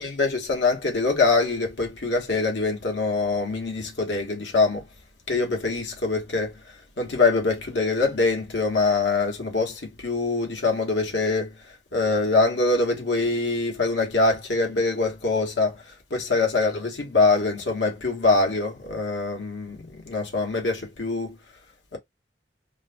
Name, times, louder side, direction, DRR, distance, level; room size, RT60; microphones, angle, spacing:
voice 1, 0.0-4.8 5.3-6.6 7.0-11.5 11.9-15.8 16.1-21.4 21.9-22.0, left 3 dB, 85° left, 1.4 m, -24 dB
3.2 x 2.7 x 2.2 m
head